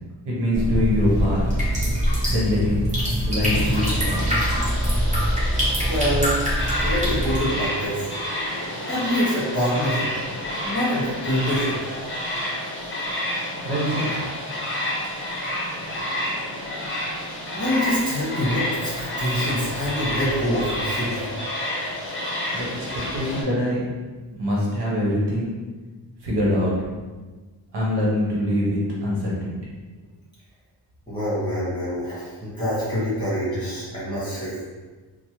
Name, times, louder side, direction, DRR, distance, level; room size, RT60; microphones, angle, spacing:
voice 1, 0.2-1.4 2.3-2.8 3.2-4.3 13.6-14.1 22.5-22.9 23.1-23.8 24.4-25.5 26.2-26.7 27.7-29.5, left 1 dB, 65° right, -5 dB, 1.0 m, -23 dB
sound 1, 0.5-7.4, equal, 15° right, 1.0 m, -23 dB
sound 2, 3.5-23.4, left 1 dB, 30° left, 0.7 m, -30 dB
voice 2, 5.8-6.4 6.8-8.0 8.9-10.1 10.6-11.8 17.0-21.3 31.1-34.6, equal, 10° left, -9 dB, 1.4 m, -25 dB
3.3 x 2.0 x 3.0 m, 1.3 s
wide cardioid pair, 120°, 43 cm